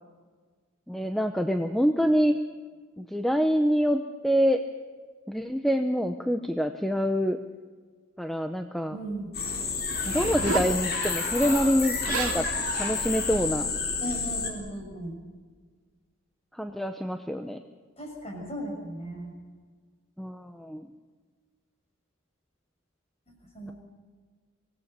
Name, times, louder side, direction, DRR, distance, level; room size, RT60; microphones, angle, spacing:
voice 1, 0.9-2.4 3.0-4.6 5.3-7.4 8.2-9.0 10.1-12.4 12.8-13.7 16.5-17.6 20.2-20.9, equal, ahead, 6 dB, 0.7 m, -26 dB
voice 2, 8.9-9.3 14.0-15.1 18.0-19.3 23.5-23.7, right 1 dB, 30° left, 1 dB, 6.6 m, -36 dB
sound 1, 9.3-14.5, left 4 dB, 45° left, 3.7 m, -30 dB
Zipper (clothing), 9.9-10.8 11.8-11.9 12.0-12.4 13.1-13.4, right 3 dB, 75° right, 2.4 m, -31 dB
25.0 x 18.0 x 6.8 m, 1.5 s
head